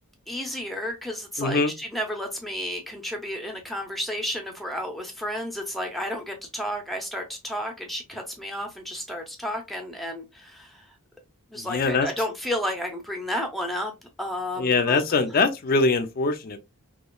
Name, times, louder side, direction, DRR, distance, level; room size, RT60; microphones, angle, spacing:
voice 1, 0.3-10.9 11.5-13.9 14.2-15.2, equal, ahead, 0.6 m, -32 dB
voice 2, 1.4-1.7 11.6-12.1 14.6-16.6, left 3 dB, 45° left, 0.5 m, -23 dB
3.0 x 2.2 x 2.3 m
head